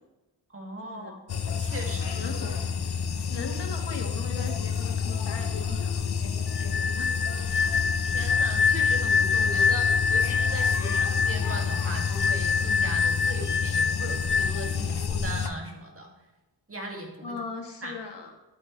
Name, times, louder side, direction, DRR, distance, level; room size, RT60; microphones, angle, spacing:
voice 1, 0.5-1.2 1.6-2.4 8.0-16.1 16.7-17.4 17.8-18.0, right 1 dB, 35° right, 1 dB, 2.1 m, -38 dB
sound 1, 1.3-15.5, left 6 dB, 65° left, 0.8 m, -29 dB
voice 2, 2.1-2.9 3.3-7.1 7.4-7.6 17.2-18.3, left 4 dB, 85° left, 3 dB, 1.5 m, -39 dB
sound 2, 6.5-14.8, left 5 dB, 30° left, 0.4 m, -26 dB
11.0 x 8.5 x 3.2 m, 1.1 s
wide cardioid pair, 90°, 41 cm